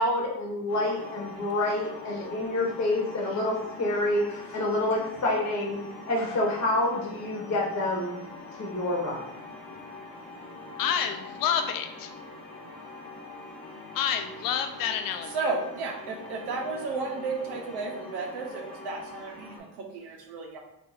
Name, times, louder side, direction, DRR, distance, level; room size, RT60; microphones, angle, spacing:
voice 1, 0.0-5.8 6.1-8.2 8.5-9.2, left 1 dB, 45° left, -2 dB, 1.1 m, -28 dB
sound 1, 0.7-19.6, left 2 dB, 15° left, 1.2 m, -43 dB
voice 2, 10.8-12.1 13.9-15.5, left 8 dB, 60° left, 7 dB, 0.5 m, -29 dB
voice 3, 15.3-20.6, right 3 dB, 85° right, 1 dB, 0.8 m, -33 dB
2.6 x 2.6 x 4.0 m, 0.85 s
cardioid pair, 105°, 39 cm